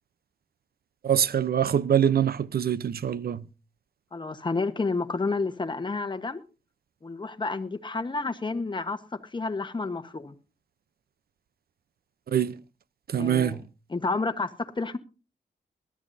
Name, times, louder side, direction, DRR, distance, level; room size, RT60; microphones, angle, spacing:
voice 1, 1.0-3.4 12.3-12.5 13.1-13.6, right 9 dB, 65° right, 0.7 m, -24 dB
voice 2, 4.1-6.4 7.0-10.3 13.2-13.6 13.9-15.0, left 3 dB, 25° left, 1.2 m, -30 dB
21.5 x 12.5 x 2.7 m
cardioid pair, 80°, 17 cm